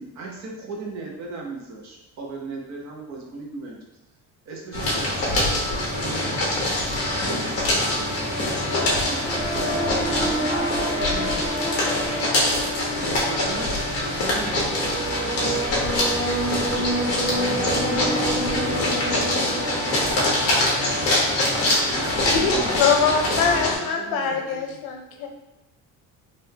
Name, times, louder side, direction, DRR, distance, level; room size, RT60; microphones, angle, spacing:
voice 1, 0.0-3.8 4.5-6.5 7.1-10.7 13.0-15.2 16.6-17.9 21.9-23.2 23.5-24.8, right 3 dB, 50° right, -1 dB, 0.8 m, -37 dB
sound 1, 4.7-23.7, left 1 dB, 40° left, 1.0 m, -24 dB
sound 2, 8.4-22.0, right 1 dB, 80° right, 1.2 m, -30 dB
voice 2, 9.7-12.4 18.7-18.9 19.6-21.6, right 1 dB, 15° right, -5 dB, 0.9 m, -37 dB
voice 3, 22.8-25.3, left 6 dB, 85° left, 3 dB, 0.6 m, -23 dB
3.5 x 2.5 x 2.8 m, 0.96 s
cardioid pair, 160°, 36 cm